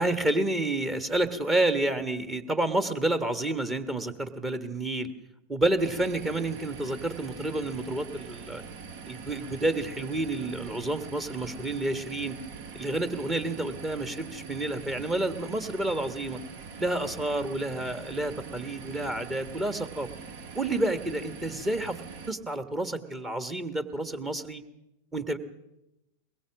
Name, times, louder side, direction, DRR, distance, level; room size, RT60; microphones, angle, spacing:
voice 1, 0.0-5.1 5.5-8.6 9.1-12.4 12.7-16.4 16.8-20.1 20.5-22.0 22.3-24.6 25.1-25.4, right 2 dB, 15° right, 10 dB, 1.5 m, -29 dB
sound 1, 5.8-22.3, right 5 dB, 50° right, 1.7 m, -43 dB
22.0 x 22.0 x 6.3 m, 0.91 s
figure-of-eight pair, 90°, 0 cm